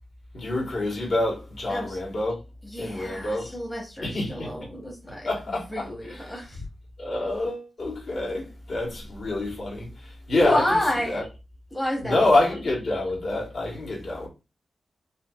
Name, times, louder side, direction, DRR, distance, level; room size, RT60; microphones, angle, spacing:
voice 1, 0.3-2.4 2.8-3.5 4.0-4.5 5.2-5.8 6.1-6.2 7.0-10.8 11.1-11.2 12.0-14.3, left 2 dB, 60° left, 1.6 m, -27 dB
voice 2, 2.6-5.3 5.7-6.7 10.3-11.2 11.7-12.4, left 1 dB, 10° left, 0.8 m, -29 dB
4.4 x 2.7 x 2.3 m
wide cardioid pair, 150°, 0 cm